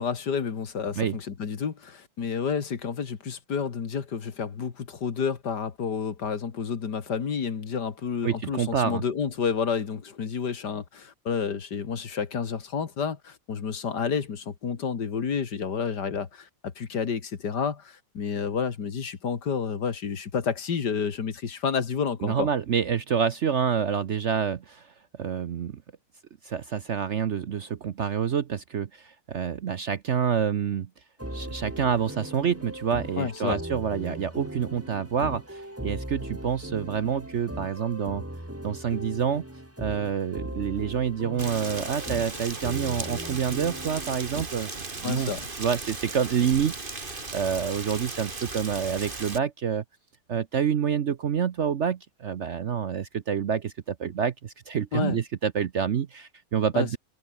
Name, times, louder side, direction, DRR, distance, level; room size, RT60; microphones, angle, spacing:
voice 1, 0.0-22.5 33.2-33.6 45.0-45.4 54.9-55.2 56.7-57.0, left 6 dB, 70° left, 2.5 m, -30 dB
voice 2, 8.2-9.0 22.2-24.9 25.2-25.8 26.4-30.9 31.3-38.2 38.6-39.4 39.8-44.7 45.0-45.3 45.6-49.8 50.3-57.0, right 7 dB, 55° right, 0.9 m, -27 dB
sound 1, 31.2-44.4, right 1 dB, 10° right, 2.9 m, -38 dB
Rain, 41.4-49.4, right 3 dB, 30° right, 2.5 m, -37 dB
omnidirectional pair, 1.9 m